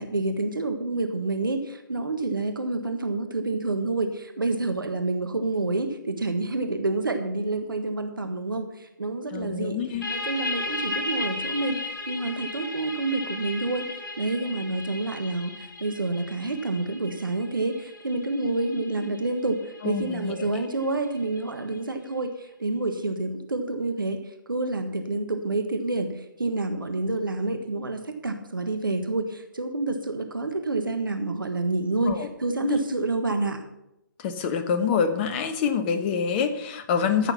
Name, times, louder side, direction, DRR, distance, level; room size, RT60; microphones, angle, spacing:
voice 1, 0.0-9.8 10.1-11.8 12.1-13.9 14.2-19.6 19.8-24.2 24.5-33.6, right 2 dB, 75° right, 7 dB, 1.5 m, -28 dB
voice 2, 9.3-10.1 19.8-20.5 32.1-32.3 32.6-32.8 34.2-37.3, left 6 dB, 30° left, 8 dB, 1.2 m, -26 dB
sound 1, 10.0-21.4, left 2 dB, 70° left, 5.1 m, -35 dB
14.0 x 7.0 x 5.8 m, 0.86 s
figure-of-eight pair, 135°, 11 cm